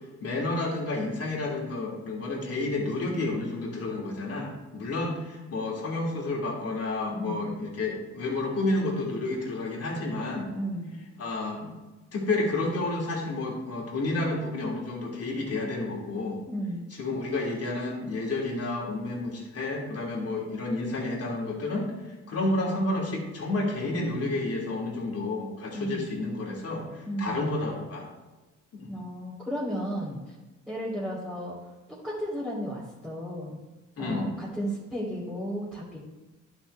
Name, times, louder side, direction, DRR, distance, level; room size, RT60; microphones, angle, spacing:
voice 1, 0.2-10.5 11.2-11.7 12.1-16.4 17.0-21.9 22.3-28.1 28.7-28.9 34.0-34.3, left 2 dB, 50° left, -3 dB, 2.9 m, -30 dB
voice 2, 7.1-7.6 10.5-11.0 16.5-16.9 25.7-26.1 27.0-27.4 28.9-30.3 30.7-31.6 31.9-33.6 34.0-36.0, equal, 5° right, -10 dB, 3.0 m, -34 dB
11.5 x 6.1 x 3.4 m, 1.2 s
cardioid pair, 90°, 30 cm